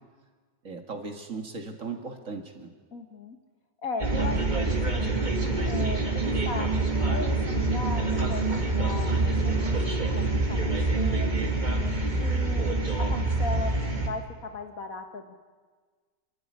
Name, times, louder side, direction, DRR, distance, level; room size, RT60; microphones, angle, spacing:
voice 1, 0.6-2.7, right 4 dB, 45° right, 5 dB, 2.2 m, -37 dB
voice 2, 2.9-3.4 3.8-6.7 7.1-9.8 10.2-11.5 12.2-13.8 14.0-15.4, left 3 dB, 50° left, 6 dB, 2.0 m, -38 dB
sound 1, 4.0-14.1, right 2 dB, 25° right, 2.5 m, -26 dB
28.5 x 13.0 x 9.8 m, 1.5 s
omnidirectional pair, 1.9 m